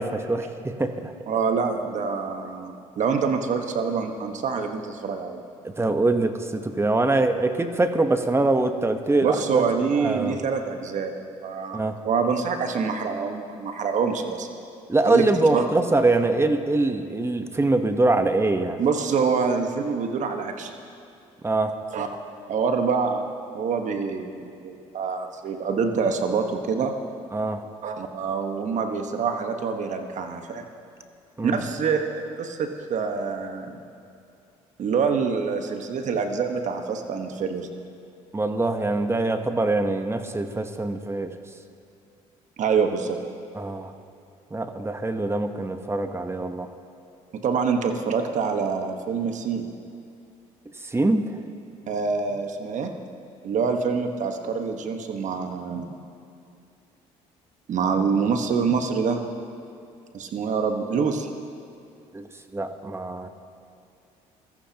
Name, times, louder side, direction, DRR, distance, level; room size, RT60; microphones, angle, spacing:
voice 1, 0.0-1.1 5.6-9.6 9.9-10.3 11.7-12.0 14.9-18.8 21.4-21.7 27.3-27.6 31.4-31.6 38.3-41.3 43.5-43.9 44.5-46.7 50.8-51.4 62.1-63.3, right 2 dB, 15° right, 7 dB, 1.0 m, -24 dB
voice 2, 1.3-5.4 9.2-11.1 11.4-11.8 12.0-14.5 15.0-15.2 15.5-15.7 18.8-20.7 21.9-22.1 22.5-23.2 23.5-26.9 27.8-30.6 31.4-33.8 34.8-37.7 42.6-43.2 47.4-49.7 51.9-52.9 53.4-55.9 57.7-59.2 60.1-61.3, right 5 dB, 55° right, 5 dB, 1.4 m, -26 dB
20.5 x 14.0 x 2.9 m, 2.6 s
supercardioid pair, 70°, 15 cm